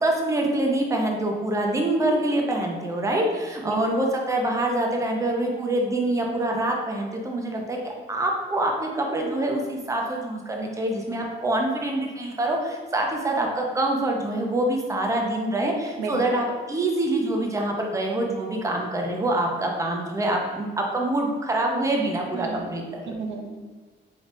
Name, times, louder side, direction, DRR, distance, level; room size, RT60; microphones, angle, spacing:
voice 1, 0.0-23.1, right 1 dB, 15° right, 0 dB, 0.7 m, -25 dB
voice 2, 22.3-22.7 23.1-23.6, right 5 dB, 85° right, 2 dB, 0.6 m, -32 dB
3.9 x 3.4 x 2.6 m, 1.4 s
cardioid pair, 90°, 20 cm